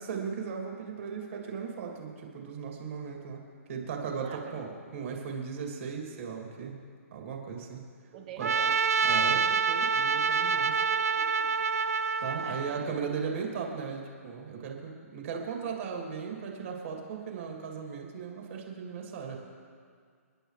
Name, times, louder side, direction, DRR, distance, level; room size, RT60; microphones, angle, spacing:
voice 1, 0.1-3.4 3.7-6.8 7.1-7.8 8.4-8.5 9.0-10.8 12.2-19.4, right 6 dB, 55° right, 0 dB, 2.7 m, -37 dB
voice 2, 4.2-4.6 8.1-8.8 10.7-11.6 12.4-13.3, right 8 dB, 35° right, 5 dB, 1.4 m, -47 dB
Trumpet, 8.4-12.8, right 5 dB, 75° right, 0.6 m, -27 dB
30.0 x 10.0 x 3.3 m, 2.1 s
hypercardioid pair, 160°, 8 cm